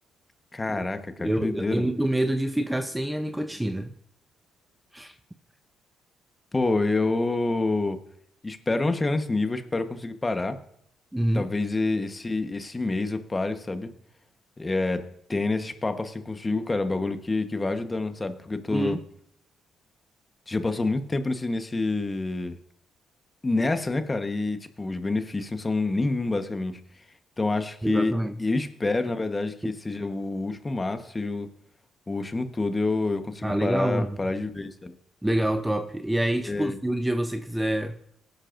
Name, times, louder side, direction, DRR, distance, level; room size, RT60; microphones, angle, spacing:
voice 1, 0.5-1.8 6.5-8.0 8.4-10.6 11.3-13.9 14.6-15.0 15.3-19.0 20.5-22.5 23.4-26.8 27.4-28.1 28.4-31.5 32.1-34.9 36.4-36.8, left 2 dB, 20° left, 1.1 m, -27 dB
voice 2, 1.2-3.9 4.9-5.2 11.1-11.5 18.7-19.0 27.8-28.4 29.6-29.7 33.4-34.2 35.2-38.0, right 1 dB, 10° right, 0.6 m, -27 dB
18.0 x 10.5 x 2.6 m
cardioid pair, 90°, 0 cm